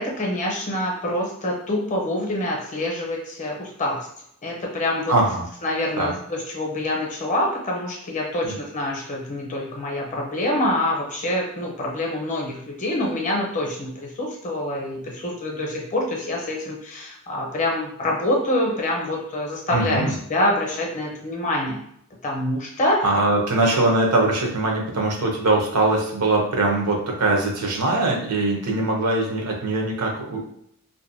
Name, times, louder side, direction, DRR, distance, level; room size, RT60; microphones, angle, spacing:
voice 1, 0.0-4.1 4.4-5.1 5.6-21.8 22.2-23.0, left 1 dB, 35° left, -1 dB, 0.6 m, -26 dB
voice 2, 5.1-5.4 6.0-6.1 8.4-8.6 19.7-20.1 23.0-30.5, right 2 dB, 85° right, 0 dB, 0.7 m, -22 dB
2.6 x 2.1 x 2.5 m, 0.70 s
head